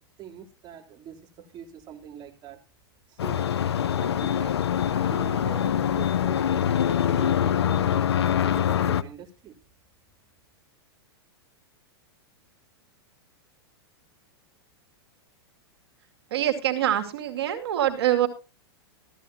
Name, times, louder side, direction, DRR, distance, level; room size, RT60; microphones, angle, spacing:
voice 1, 0.2-2.6 3.1-3.5 3.8-9.6, right 9 dB, 35° right, 0 dB, 3.3 m, -43 dB
sound 1, 3.2-9.0, left 9 dB, 85° left, 0.7 m, -24 dB
voice 2, 16.3-18.3, right 12 dB, 70° right, 6 dB, 2.4 m, -24 dB
14.0 x 13.5 x 2.8 m, 0.30 s
hypercardioid pair, 115°, 13 cm